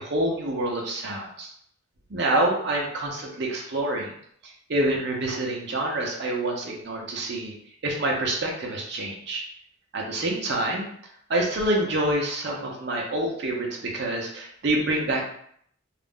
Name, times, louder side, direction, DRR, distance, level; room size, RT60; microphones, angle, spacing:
voice 1, 0.0-1.5 2.1-4.1 4.4-7.5 7.8-9.4 9.9-10.9 11.3-15.3, right 1 dB, 55° right, -1 dB, 0.6 m, -27 dB
2.4 x 2.0 x 3.5 m, 0.67 s
head